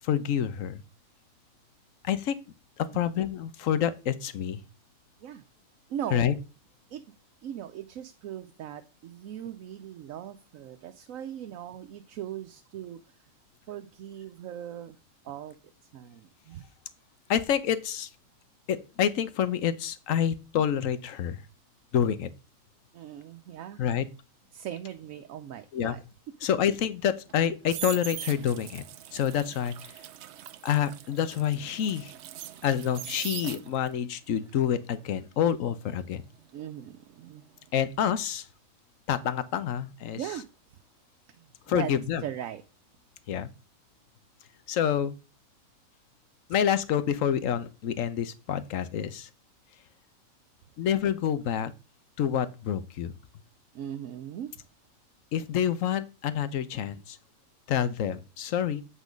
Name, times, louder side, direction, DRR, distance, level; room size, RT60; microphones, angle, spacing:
voice 1, 0.0-0.8 2.0-2.4 2.8-4.6 6.1-6.3 17.3-18.1 18.7-21.4 21.9-22.3 23.8-24.1 25.7-26.0 26.4-28.8 29.1-29.9 30.6-32.1 32.6-36.2 37.7-38.5 39.1-40.2 41.7-42.2 43.3-43.5 44.7-45.1 46.5-49.3 50.8-51.7 52.2-53.2 55.3-57.2 57.7-58.8, left 9 dB, 75° left, 1.2 m, -27 dB
voice 2, 5.9-6.3 6.9-7.0 7.4-13.0 13.7-15.0 15.2-15.6 15.9-16.7 22.9-23.8 24.5-26.0 36.5-37.4 40.1-40.4 41.3-41.9 42.2-42.6 53.7-54.6, right 10 dB, 85° right, 1.1 m, -39 dB
sound 1, 27.3-34.0 34.4-37.3 37.5-37.9, right 12 dB, 65° right, 0.8 m, -41 dB
8.3 x 4.1 x 5.1 m
omnidirectional pair, 1.4 m